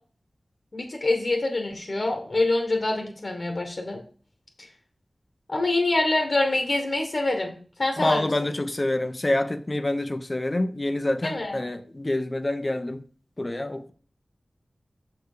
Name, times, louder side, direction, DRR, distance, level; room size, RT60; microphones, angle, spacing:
voice 1, 0.7-4.0 5.5-7.5 7.8-8.3 11.2-11.6, left 2 dB, 60° left, 1.4 m, -25 dB
voice 2, 8.0-13.0 13.4-13.9, left 1 dB, 35° left, 0.8 m, -27 dB
6.5 x 4.7 x 5.0 m
cardioid pair, 45°, 0 cm